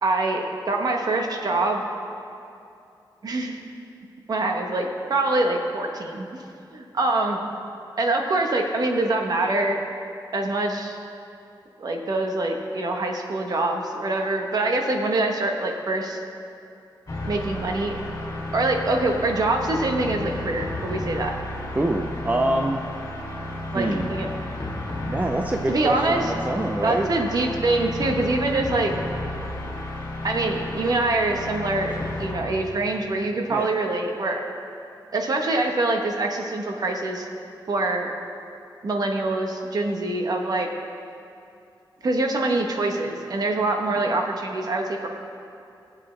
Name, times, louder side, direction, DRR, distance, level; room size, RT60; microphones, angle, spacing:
voice 1, 0.0-1.8 3.2-3.6 4.3-6.4 6.7-7.4 8.0-9.8 10.3-11.0 11.8-16.2 17.2-18.0 18.5-21.3 23.7-24.3 25.7-26.2 26.8-28.9 30.2-31.9 32.2-34.4 35.1-37.3 37.7-38.1 38.8-40.7 42.0-45.1, right 2 dB, 50° right, 2 dB, 1.1 m, -24 dB
sound 1, 17.1-32.7, left 1 dB, 45° left, 2.3 m, -32 dB
voice 2, 21.7-22.8 23.7-24.1 25.1-27.1 33.5-33.7, right 1 dB, 20° right, 3 dB, 0.5 m, -25 dB
21.0 x 7.6 x 3.3 m, 2.6 s
wide cardioid pair, 150°, 8 cm